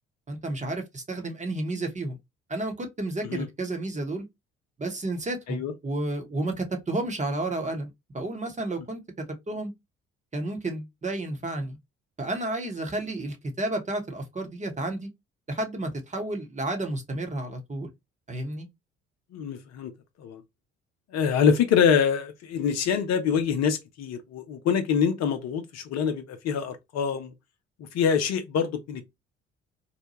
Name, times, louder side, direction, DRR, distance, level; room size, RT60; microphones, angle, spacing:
voice 1, 0.3-2.2 2.5-4.3 4.8-9.7 10.3-11.8 12.2-15.1 15.5-17.9 18.3-18.7, right 2 dB, 25° right, 1.0 m, -31 dB
voice 2, 19.3-19.9 20.2-20.4 21.1-27.3 27.9-29.1, left 7 dB, 60° left, 0.7 m, -25 dB
2.8 x 2.2 x 2.8 m
hypercardioid pair, 50°, 31 cm